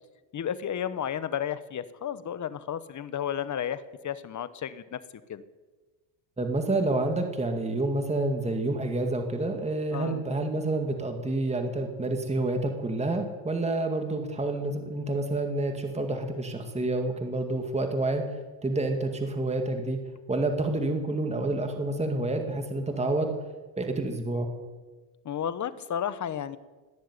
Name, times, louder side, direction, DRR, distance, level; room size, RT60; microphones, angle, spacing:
voice 1, 0.3-5.0 5.3-5.4 9.9-10.2 25.2-26.6, left 9 dB, 35° left, 15 dB, 1.1 m, -32 dB
voice 2, 6.4-18.3 18.6-20.0 20.3-23.4 23.8-24.5, right 2 dB, 15° right, 4 dB, 2.1 m, -28 dB
18.5 x 7.3 x 9.7 m, 1.3 s
supercardioid pair, 105°, 50 cm